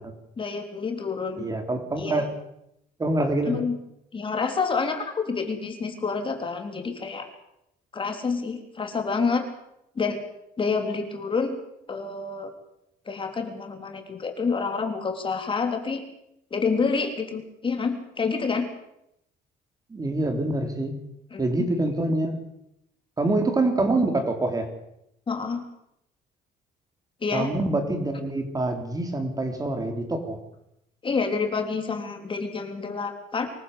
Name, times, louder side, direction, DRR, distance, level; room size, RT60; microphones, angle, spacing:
voice 1, 0.4-1.5 2.0-2.2 3.5-3.8 4.1-7.3 7.9-9.5 10.0-10.2 10.6-11.6 11.9-12.5 13.1-16.0 16.5-18.7 21.3-21.7 25.3-25.6 27.2-27.5 31.0-33.5, left 4 dB, 30° left, 5 dB, 3.5 m, -28 dB
voice 2, 1.4-2.3 3.0-3.6 19.9-21.0 21.4-22.4 23.2-24.7 27.3-30.4, right 2 dB, 20° right, 5 dB, 3.6 m, -25 dB
24.5 x 15.0 x 8.2 m, 0.80 s
cardioid pair, 110°, 17 cm